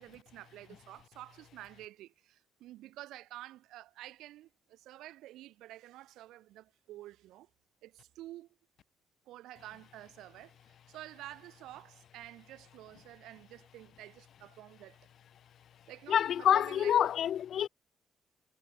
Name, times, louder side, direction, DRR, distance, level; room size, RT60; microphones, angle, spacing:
voice 1, 0.0-7.5 7.8-8.5 9.3-15.0 15.9-16.9, right 15 dB, 90° right, 3.6 m, -50 dB
voice 2, 16.1-17.7, left 10 dB, 65° left, 0.6 m, -27 dB
cardioid pair, 90°, 0 cm